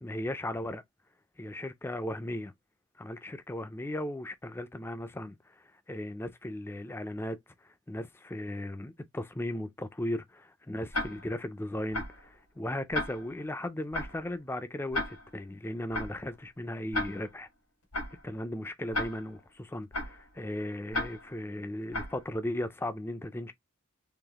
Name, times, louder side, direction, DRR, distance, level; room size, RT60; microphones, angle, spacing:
voice 1, 0.0-0.8 1.4-2.5 3.0-17.5 18.2-23.5, left 1 dB, 10° left, 0.3 m, -37 dB
Tick-tock, 10.9-11.4 11.9-12.3 12.9-13.4 13.9-14.3 14.9-15.4 15.9-16.3 16.9-17.4 17.9-18.3 18.9-19.4 19.9-20.3 20.9-21.4 21.9-22.3, left 1 dB, 90° left, 1.8 m, -35 dB
3.9 x 2.9 x 2.9 m
head